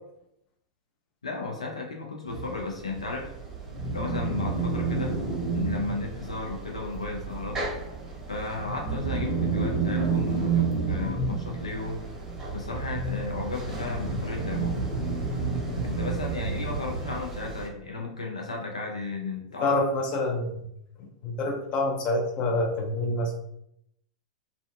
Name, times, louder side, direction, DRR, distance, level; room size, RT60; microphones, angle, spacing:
voice 1, 1.2-3.3 3.9-5.1 5.5-7.6 8.3-12.1 12.5-14.9 15.8-19.8, left 3 dB, 85° left, 1 dB, 0.4 m, -34 dB
sound 1, 2.3-17.7, right 4 dB, 15° right, 0.8 m, -30 dB
voice 2, 19.6-20.6 21.0-23.3, left 2 dB, 35° left, 1 dB, 0.6 m, -27 dB
2.4 x 2.2 x 2.3 m, 0.76 s
figure-of-eight pair, 95°, 3 cm